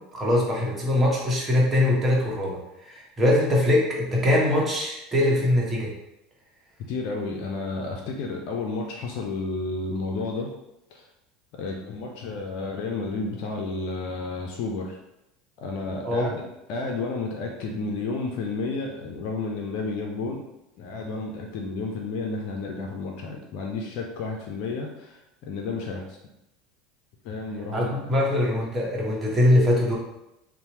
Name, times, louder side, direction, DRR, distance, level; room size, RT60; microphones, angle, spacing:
voice 1, 0.1-5.9 16.0-16.3 27.7-29.9, left 1 dB, 25° right, -3 dB, 0.9 m, -22 dB
voice 2, 6.9-10.5 10.9-11.1 11.5-15.0 15.6-20.4 20.8-26.2 27.2-27.9, left 3 dB, 60° left, 1 dB, 0.4 m, -31 dB
2.8 x 2.0 x 2.8 m, 0.89 s
hypercardioid pair, 90°, 0 cm